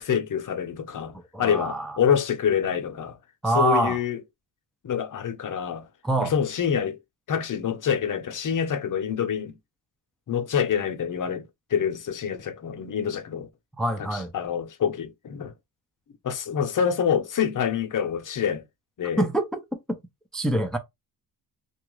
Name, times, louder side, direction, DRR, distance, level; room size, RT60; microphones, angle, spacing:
voice 1, 0.0-3.2 3.5-4.2 4.8-5.9 6.2-7.0 7.3-9.5 10.3-13.5 14.0-15.5 16.2-18.6 19.0-19.2, left 8 dB, 45° left, 0.7 m, -26 dB
voice 2, 1.3-2.0 3.4-4.0 6.0-6.3 13.8-14.3 19.2-20.0 20.3-20.8, right 2 dB, ahead, 0.4 m, -25 dB
2.9 x 2.3 x 3.0 m
cardioid pair, 100°, 42 cm